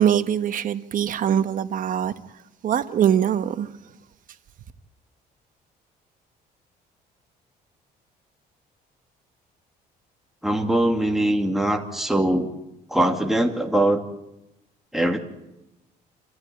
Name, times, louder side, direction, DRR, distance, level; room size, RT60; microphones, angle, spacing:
voice 1, 0.0-2.1 2.6-3.7, right 9 dB, 55° right, 1.3 m, -22 dB
voice 2, 10.4-12.5 12.9-14.0 14.9-15.2, right 1 dB, ahead, 2.6 m, -22 dB
27.5 x 14.5 x 9.0 m
cardioid pair, 110°, 17 cm